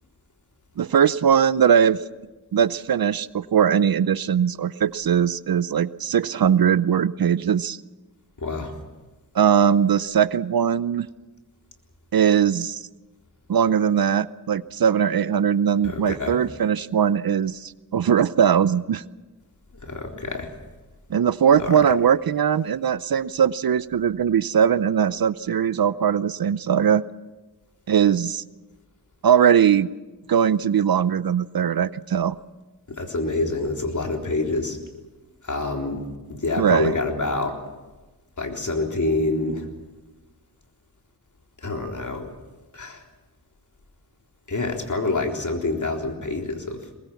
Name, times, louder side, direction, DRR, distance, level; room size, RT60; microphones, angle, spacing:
voice 1, 0.8-2.0 2.5-7.8 9.3-11.1 12.1-12.8 13.5-19.0 21.1-27.0 27.9-28.4 29.2-29.9 30.3-32.4 36.6-36.9, right 8 dB, 65° right, 17 dB, 0.7 m, -20 dB
voice 2, 8.4-8.7 15.8-16.4 19.8-20.5 21.6-21.7 32.9-34.8 35.4-36.0 36.3-37.6 38.4-39.7 41.6-42.3 42.7-43.0 44.5-46.8, left 2 dB, 50° left, 2 dB, 3.9 m, -26 dB
22.5 x 20.5 x 7.1 m, 1.2 s
cardioid pair, 65°, 39 cm